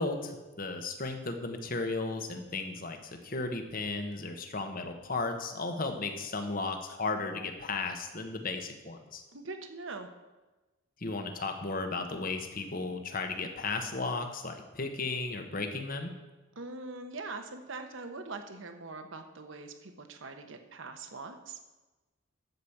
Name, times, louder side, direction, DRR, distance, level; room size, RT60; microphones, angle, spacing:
voice 1, 0.0-9.2 11.0-16.1, left 3 dB, 40° left, 6 dB, 1.1 m, -35 dB
voice 2, 9.3-10.1 16.6-21.6, right 3 dB, 65° right, 7 dB, 1.0 m, -42 dB
12.0 x 5.2 x 7.2 m, 1.1 s
head